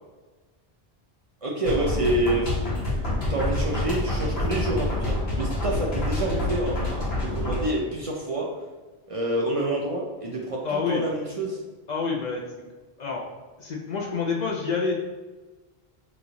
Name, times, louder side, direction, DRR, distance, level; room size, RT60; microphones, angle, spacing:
voice 1, 1.4-2.6 3.3-8.5 9.1-11.6, right 1 dB, 45° right, -2 dB, 0.4 m, -27 dB
sound 1, 1.6-7.7, left 1 dB, 75° left, 1.1 m, -27 dB
voice 2, 10.6-11.0 11.9-12.7 13.0-13.2 13.6-14.9, left 5 dB, 50° left, -2 dB, 0.6 m, -28 dB
3.0 x 2.4 x 3.9 m, 1.3 s
omnidirectional pair, 1.1 m